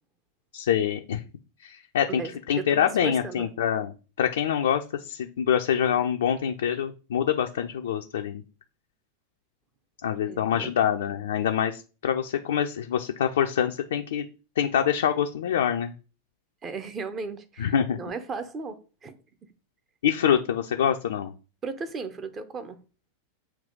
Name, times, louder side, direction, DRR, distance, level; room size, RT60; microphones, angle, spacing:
voice 1, 0.5-1.2 1.6-2.2 2.5-8.4 10.0-14.2 14.6-15.9 17.6-18.0 20.0-21.3, left 9 dB, 60° left, 0.5 m, -25 dB
voice 2, 2.1-3.5 10.3-10.7 16.6-19.2 21.6-22.8, right 4 dB, 25° right, 0.9 m, -36 dB
7.3 x 3.0 x 5.2 m
figure-of-eight pair, 90°, 0 cm